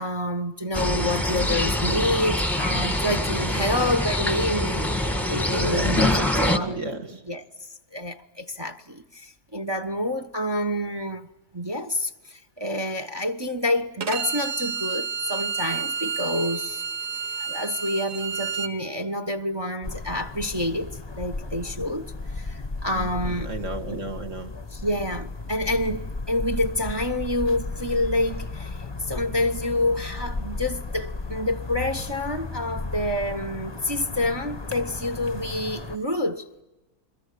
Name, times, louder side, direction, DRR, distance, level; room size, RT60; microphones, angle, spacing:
voice 1, 0.0-4.9 5.3-6.2 6.5-6.8 7.3-11.3 11.5-16.8 17.4-23.5 23.9-24.0 24.7-36.5, left 1 dB, 15° right, 1.1 m, -28 dB
sound 1, 0.7-6.6, left 1 dB, ahead, 1.4 m, -24 dB
voice 2, 5.6-7.2 22.9-24.5, right 2 dB, 50° right, 2.6 m, -33 dB
Bowed string instrument, 14.0-18.7, right 6 dB, 85° right, 1.9 m, -30 dB
sound 2, 19.8-36.0, left 3 dB, 20° left, 1.0 m, -35 dB
28.5 x 22.5 x 8.5 m
omnidirectional pair, 1.7 m